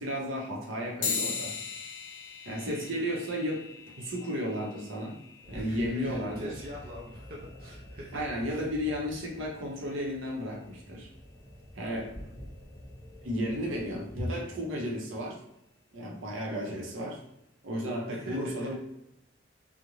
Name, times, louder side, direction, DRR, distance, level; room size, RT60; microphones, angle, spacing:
voice 1, 0.0-1.5 2.4-3.7 4.0-5.2 5.5-6.5 8.1-11.1 11.7-12.1 13.2-15.4 15.9-17.2 17.6-18.7, equal, 85° right, -2 dB, 0.7 m, -33 dB
sound 1, 1.0-10.8, left 6 dB, 80° left, 0.5 m, -41 dB
sound 2, 5.4-14.2, equal, 10° right, 0.8 m, -48 dB
voice 2, 5.5-8.2 8.5-8.7 12.1-12.3 18.1-18.7, right 1 dB, 45° right, -3 dB, 0.4 m, -44 dB
2.4 x 2.1 x 3.0 m, 0.86 s
head